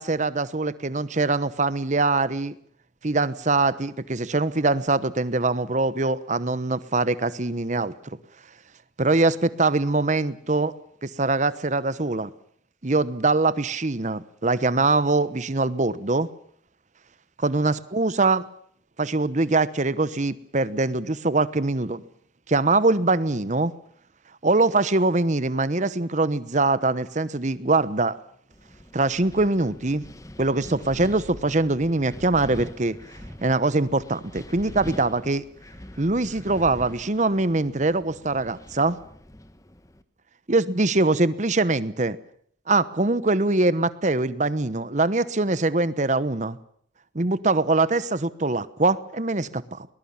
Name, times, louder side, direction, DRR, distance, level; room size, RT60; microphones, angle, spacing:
voice 1, 0.0-2.5 3.0-7.9 9.0-10.7 11.0-12.3 12.8-16.3 17.4-18.4 19.0-22.0 22.5-23.7 24.4-28.2 28.9-30.0 30.4-33.0 33.4-35.4 36.0-39.0 40.5-42.2 42.7-46.6 47.1-49.9, right 3 dB, 40° right, 16 dB, 1.0 m, -23 dB
Wind, 28.5-40.0, left 1 dB, 20° left, 1.2 m, -43 dB
21.5 x 20.0 x 7.3 m, 0.63 s
head